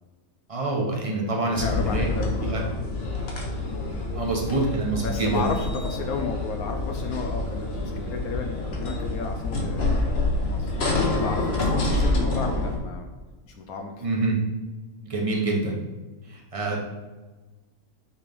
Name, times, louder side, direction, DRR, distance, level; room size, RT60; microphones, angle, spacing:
voice 1, 0.5-2.1 2.4-2.6 4.1-5.5 14.0-14.4 15.0-15.8 16.3-16.8, right 2 dB, 25° right, -2 dB, 1.0 m, -26 dB
voice 2, 1.5-2.8 5.0-10.7 11.1-13.1 13.5-14.0, left 4 dB, 75° left, 3 dB, 1.1 m, -33 dB
sound 1, 1.6-12.8, left 2 dB, 45° left, 1.2 m, -27 dB
5.7 x 3.2 x 5.3 m, 1.2 s
omnidirectional pair, 1.6 m